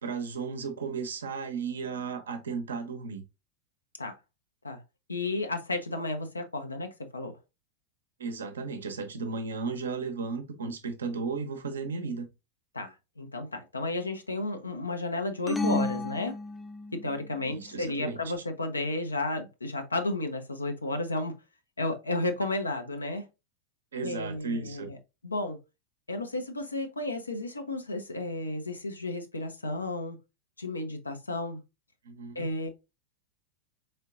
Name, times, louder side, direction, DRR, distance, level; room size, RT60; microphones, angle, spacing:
voice 1, 0.0-3.2 8.2-12.3 17.4-18.2 23.9-24.9 32.0-32.5, right 5 dB, 65° right, 0.8 m, -35 dB
voice 2, 5.1-7.3 12.7-16.4 16.9-21.3 21.8-23.3 24.0-25.0 25.2-25.6 26.1-30.2 30.6-31.6 32.3-32.7, left 2 dB, 80° left, 0.7 m, -32 dB
sound 1, 15.5-17.1, left 2 dB, 5° left, 0.3 m, -31 dB
4.2 x 3.7 x 2.4 m
figure-of-eight pair, 90°, 0 cm